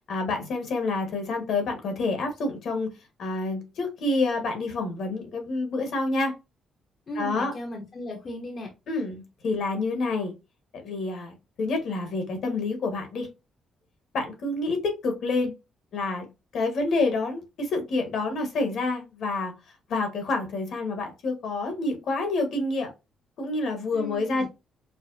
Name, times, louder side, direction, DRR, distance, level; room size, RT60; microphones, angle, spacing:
voice 1, 0.1-2.9 3.2-6.3 7.1-7.5 8.9-10.3 10.8-13.3 14.1-15.5 15.9-16.2 16.5-19.5 19.9-22.9 23.4-24.5, left 3 dB, 70° left, 4 dB, 1.3 m, -28 dB
voice 2, 7.1-8.7 23.9-24.5, left 1 dB, 45° left, 1 dB, 0.9 m, -36 dB
5.0 x 2.1 x 2.6 m, 0.25 s
cardioid pair, 90°, 0 cm